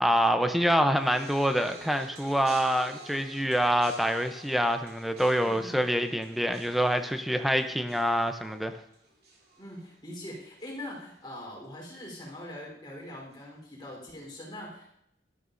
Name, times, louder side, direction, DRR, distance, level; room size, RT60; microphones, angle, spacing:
voice 1, 0.0-8.7, equal, ahead, 7 dB, 0.5 m, -26 dB
sound 1, 0.9-10.3 10.6-11.1 12.0-12.1, right 2 dB, 55° right, 2.6 m, -50 dB
voice 2, 5.4-5.8 9.6-14.9, left 1 dB, 25° left, -3 dB, 3.6 m, -42 dB
12.5 x 12.0 x 2.6 m, 0.79 s
head